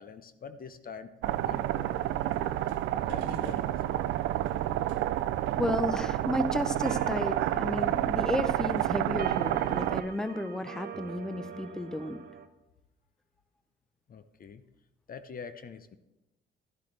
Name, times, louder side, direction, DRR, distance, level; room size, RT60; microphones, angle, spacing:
voice 1, 0.0-2.0 3.1-4.1 14.1-14.6 15.1-16.0, left 5 dB, 45° left, 11 dB, 0.7 m, -45 dB
sound 1, 1.2-10.0, right 13 dB, 85° right, 0.4 m, -29 dB
sound 2, 1.7-3.8 6.5-12.5, right 7 dB, 50° right, 0.8 m, -45 dB
voice 2, 5.6-12.2, left 1 dB, 5° left, 10 dB, 0.7 m, -33 dB
11.5 x 11.5 x 3.3 m, 0.97 s
cardioid pair, 90°, 20 cm